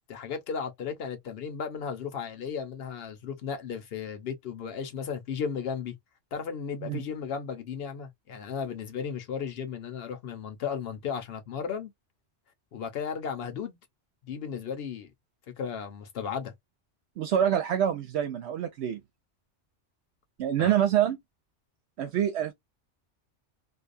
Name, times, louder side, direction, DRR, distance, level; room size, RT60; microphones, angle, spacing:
voice 1, 0.1-5.9 6.3-11.9 12.7-13.8 14.2-15.1 15.6-16.5 20.6-20.7, left 6 dB, 60° left, 0.9 m, -35 dB
voice 2, 17.2-19.0 20.4-21.2 22.0-22.5, right 10 dB, 70° right, 0.8 m, -26 dB
2.6 x 2.2 x 2.4 m
omnidirectional pair, 1.2 m